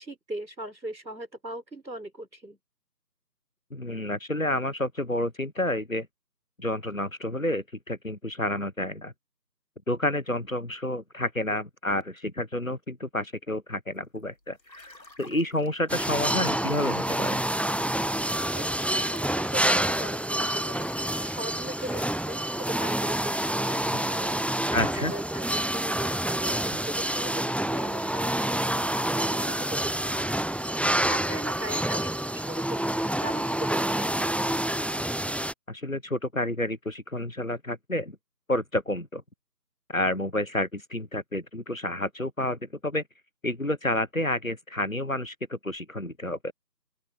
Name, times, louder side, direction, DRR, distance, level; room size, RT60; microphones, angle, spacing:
voice 1, 0.0-2.6 18.5-20.9 21.3-28.5 29.0-30.5 31.0-34.5, right 1 dB, 90° right, 4.6 m, -39 dB
voice 2, 3.7-6.1 6.6-9.1 9.9-17.4 24.7-25.1 34.9-35.0 35.7-38.2 38.5-39.2 39.9-43.0 43.4-46.5, left 1 dB, 55° left, 1.1 m, -30 dB
sound 1, 14.2-20.2 20.6-22.1, left 2 dB, 80° left, 2.2 m, -52 dB
sound 2, 15.9-35.5, right 1 dB, 5° left, 0.4 m, -28 dB
open air
figure-of-eight pair, 180°, 50 cm